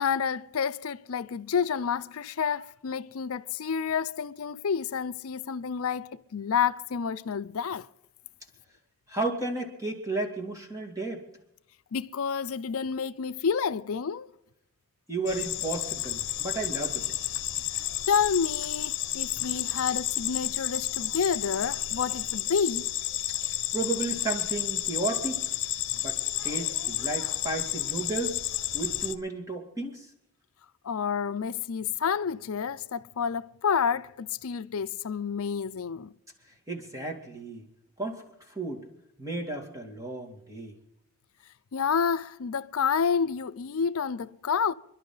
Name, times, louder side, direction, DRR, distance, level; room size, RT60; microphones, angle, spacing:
voice 1, 0.0-7.9 11.9-14.3 17.8-22.9 30.8-36.1 41.7-44.7, left 6 dB, 70° left, 0.5 m, -29 dB
voice 2, 9.1-11.2 15.1-17.1 23.5-25.4 25.9-28.4 28.7-30.1 36.7-37.7 38.0-38.2 38.5-38.9 39.2-40.8, right 2 dB, 15° right, 2.4 m, -33 dB
sound 1, 15.3-29.1, left 14 dB, 55° left, 1.0 m, -31 dB
27.5 x 11.5 x 3.9 m
head